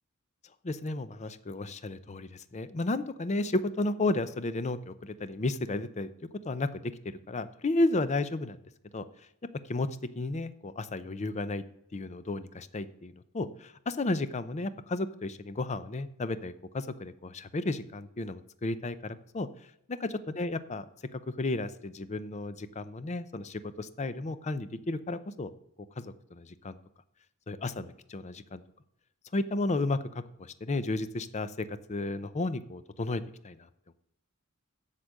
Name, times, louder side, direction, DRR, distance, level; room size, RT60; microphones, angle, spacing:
voice 1, 0.6-6.1 6.4-6.9 7.3-8.6 8.9-9.0 9.7-9.9 10.2-11.6 11.9-19.5 20.0-20.9 21.1-25.5 26.0-26.8 27.5-28.6 29.3-30.0 30.4-33.6, left 2 dB, 35° left, 13 dB, 0.5 m, -33 dB
8.1 x 7.4 x 6.4 m, 0.76 s
head